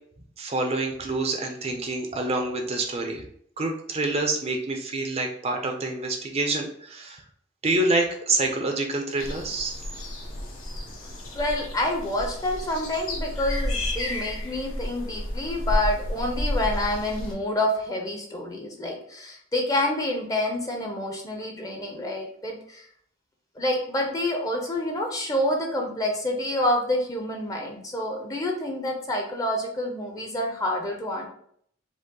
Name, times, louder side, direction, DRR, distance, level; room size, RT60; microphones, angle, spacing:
voice 1, 0.4-3.2 3.6-7.2 7.6-9.8, right 2 dB, 30° right, 3 dB, 0.5 m, -27 dB
sound 1, 9.2-17.3, left 1 dB, 80° left, 1.0 m, -31 dB
voice 2, 11.3-22.9 23.6-31.3, left 1 dB, 15° left, 1 dB, 0.7 m, -28 dB
5.1 x 2.0 x 3.8 m, 0.64 s
head